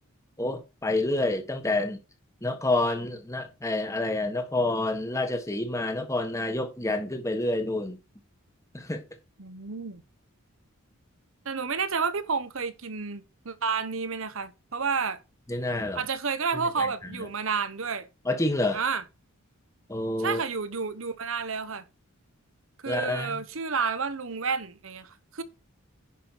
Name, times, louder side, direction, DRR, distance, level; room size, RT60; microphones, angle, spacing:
voice 1, 0.4-2.0 2.4-8.0 8.7-9.0 15.5-16.0 16.8-16.9 18.2-18.8 19.9-20.4 22.9-23.4, left 2 dB, 15° left, 1.4 m, -28 dB
voice 2, 9.4-10.0 11.4-15.2 15.9-18.1 18.7-19.0 20.2-21.8 22.8-25.4, right 5 dB, 60° right, 1.0 m, -30 dB
10.5 x 5.6 x 4.6 m
head